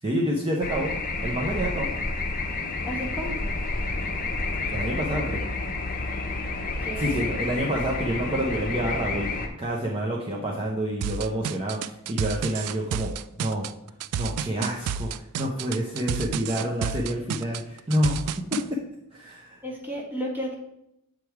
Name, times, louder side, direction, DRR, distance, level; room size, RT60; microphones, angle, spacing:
voice 1, 0.0-0.9 1.2-1.9 4.7-5.4 7.0-9.3 9.6-13.1 13.4-13.7 14.2-18.8 19.1-19.6, equal, 25° right, -3 dB, 0.7 m, -28 dB
sound 1, 0.6-9.5, left 3 dB, 40° left, 0.7 m, -30 dB
voice 2, 2.8-3.6 6.8-7.2 19.6-20.5, equal, 10° right, -2 dB, 1.4 m, -33 dB
sound 2, 11.0-18.6, right 7 dB, 90° right, 0.3 m, -30 dB
7.5 x 3.4 x 4.7 m, 0.80 s
head